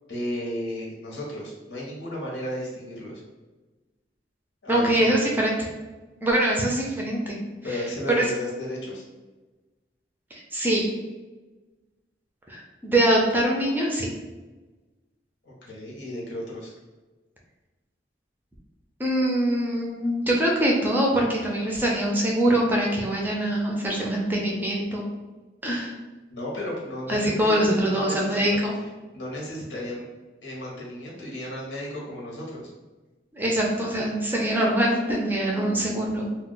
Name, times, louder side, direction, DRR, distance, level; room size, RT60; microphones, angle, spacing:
voice 1, 0.1-3.2 4.6-5.1 7.6-9.0 15.4-16.7 26.3-28.6 29.1-30.1 30.4-32.7, left 1 dB, 90° left, -4 dB, 0.9 m, -34 dB
voice 2, 4.7-5.5 6.2-7.4 7.7-7.8 8.1-8.2 10.3-10.8 12.5-14.1 19.0-25.0 25.6-25.9 27.1-28.8 33.3-36.3, right 1 dB, 10° right, -2 dB, 0.4 m, -23 dB
2.3 x 2.1 x 3.7 m, 1.2 s
head